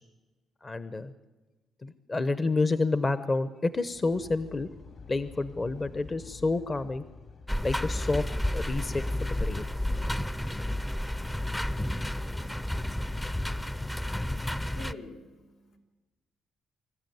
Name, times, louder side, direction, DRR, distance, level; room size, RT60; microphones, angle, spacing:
voice 1, 0.6-1.1 1.8-4.7 5.1-7.0 7.6-8.2 8.5-9.7, left 3 dB, 30° left, 13 dB, 0.9 m, -29 dB
sound 1, 3.7-8.9, left 5 dB, 55° left, 2.8 m, -50 dB
sound 2, 7.5-14.9, left 1 dB, 10° left, 0.6 m, -31 dB
voice 2, 14.6-15.8, left 2 dB, 85° left, 1 dB, 4.2 m, -45 dB
25.5 x 14.0 x 9.4 m, 1.2 s
cardioid pair, 90°, 0 cm